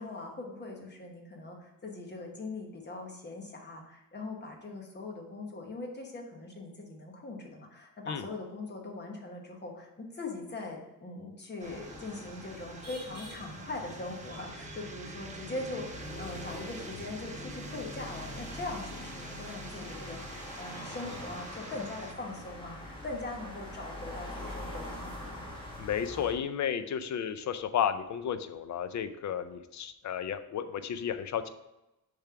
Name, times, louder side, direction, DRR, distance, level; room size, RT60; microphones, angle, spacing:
voice 1, 0.0-25.4, left 2 dB, 30° left, 1 dB, 1.1 m, -41 dB
sound 1, 11.6-26.3, left 1 dB, 15° left, 1.3 m, -43 dB
sound 2, 11.6-22.1, right 3 dB, 20° right, 0.6 m, -48 dB
voice 2, 25.8-31.5, left 8 dB, 55° left, 11 dB, 0.5 m, -33 dB
6.8 x 3.5 x 5.7 m, 0.93 s
wide cardioid pair, 180°, 35 cm